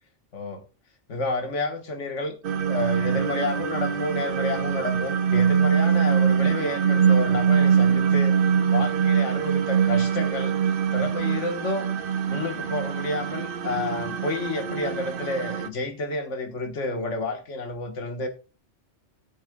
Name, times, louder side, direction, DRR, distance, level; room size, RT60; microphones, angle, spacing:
voice 1, 0.3-0.6 1.1-8.3 8.7-11.9 12.3-18.3, left 2 dB, 85° left, 1.7 m, -30 dB
sound 1, 2.4-15.7, right 7 dB, 55° right, 0.7 m, -23 dB
19.0 x 6.4 x 2.3 m
omnidirectional pair, 1.2 m